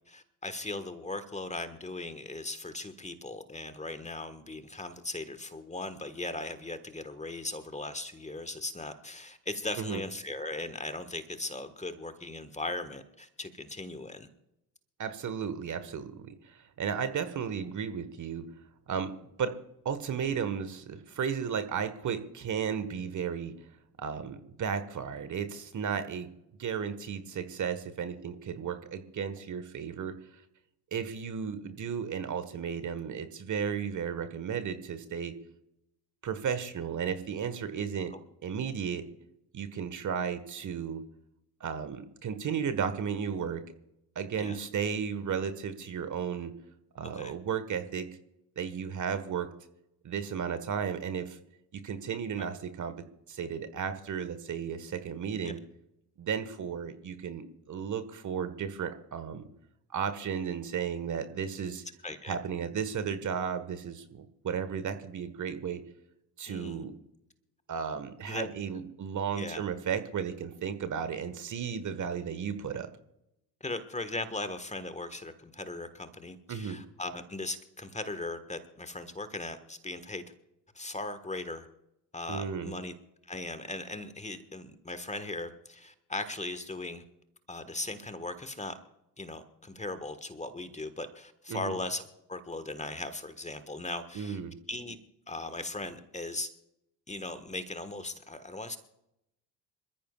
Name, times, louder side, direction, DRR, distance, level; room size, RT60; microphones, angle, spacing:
voice 1, 0.1-14.3 38.1-38.2 44.4-44.6 47.1-47.4 52.4-52.5 55.4-55.5 62.0-62.4 66.5-66.8 68.3-68.5 68.7-68.9 69.3-69.7 73.6-80.2 80.7-81.7 82.1-82.9 83.2-87.0 87.5-88.8 89.2-94.4 94.7-95.0 95.3-96.5 97.1-98.8, left 2 dB, 15° left, 11 dB, 1.5 m, -38 dB
voice 2, 15.0-18.5 18.9-19.6 19.8-23.5 24.0-26.3 26.6-30.2 30.9-35.3 36.2-38.1 38.4-39.1 39.5-41.0 41.6-43.6 44.1-46.5 46.9-48.1 48.6-49.5 50.0-51.4 51.7-55.6 56.2-59.5 59.9-61.8 62.3-65.8 66.4-67.0 67.7-72.9 76.5-76.8 82.3-82.7 91.5-91.7 94.1-94.5, right 7 dB, 35° right, 11 dB, 1.5 m, -34 dB
27.0 x 14.5 x 2.4 m, 0.83 s
figure-of-eight pair, 55°, 49 cm